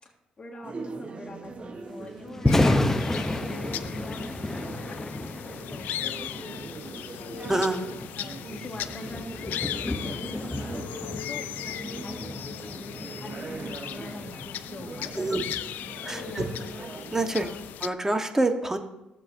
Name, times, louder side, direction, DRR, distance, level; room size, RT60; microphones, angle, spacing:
voice 1, 0.0-7.3 8.1-15.4 16.2-16.7 17.3-17.7, left 2 dB, 35° left, 0 dB, 1.7 m, -44 dB
sound 1, 0.6-17.3, right 3 dB, 40° right, 1.1 m, -41 dB
Thunder, 2.3-16.5, left 1 dB, 15° left, 0.7 m, -32 dB
sound 2, 2.5-17.9, left 11 dB, 80° left, 0.4 m, -38 dB
voice 2, 7.5-7.9 15.2-15.4 16.0-16.4 17.1-17.5 17.8-18.8, right 2 dB, 15° right, 6 dB, 1.2 m, -26 dB
15.0 x 7.5 x 2.6 m, 0.95 s
cardioid pair, 70°, 3 cm